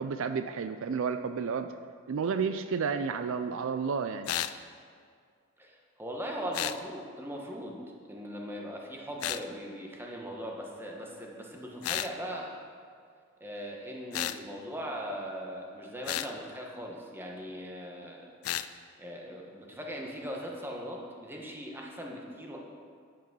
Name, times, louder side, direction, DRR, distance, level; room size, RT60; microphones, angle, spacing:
voice 1, 0.0-1.7 2.1-4.3, right 5 dB, 65° right, 9 dB, 0.4 m, -31 dB
sound 1, 4.3-4.6 6.5-6.8 9.2-9.4 11.8-12.1 14.1-14.4 16.1-16.3 18.4-18.7, left 12 dB, 85° left, 0.4 m, -32 dB
voice 2, 5.6-7.8 8.1-12.5 13.4-18.2 19.0-22.6, equal, 10° right, -1 dB, 1.2 m, -39 dB
10.5 x 6.1 x 6.1 m, 2.2 s
head